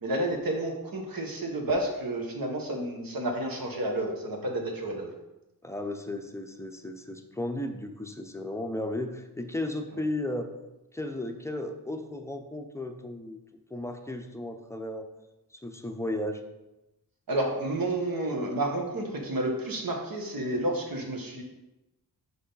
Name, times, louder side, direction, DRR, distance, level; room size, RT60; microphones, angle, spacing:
voice 1, 0.0-5.1 17.3-21.4, right 1 dB, 60° right, 1 dB, 1.4 m, -30 dB
voice 2, 5.6-10.5 10.9-13.4 13.7-15.1 15.5-16.4, left 1 dB, 5° left, 5 dB, 0.6 m, -34 dB
6.1 x 5.4 x 4.0 m, 0.97 s
wide cardioid pair, 110°, 39 cm